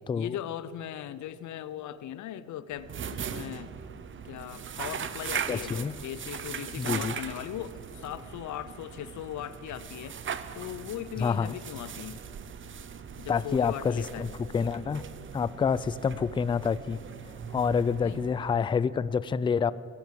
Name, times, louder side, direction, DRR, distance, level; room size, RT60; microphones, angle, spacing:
voice 1, 0.1-3.7 4.2-10.2 10.5-12.3 13.2-14.3 18.0-18.2, left 11 dB, 70° left, 16 dB, 0.7 m, -39 dB
sound 1, 2.7-18.9, right 7 dB, 40° right, 0.8 m, -39 dB
voice 2, 5.5-6.0 6.8-7.2 11.2-11.6 13.3-15.0 15.3-17.0 17.5-19.7, left 6 dB, 15° left, 18 dB, 0.3 m, -28 dB
16.0 x 10.5 x 7.6 m, 2.9 s
cardioid pair, 90°, 30 cm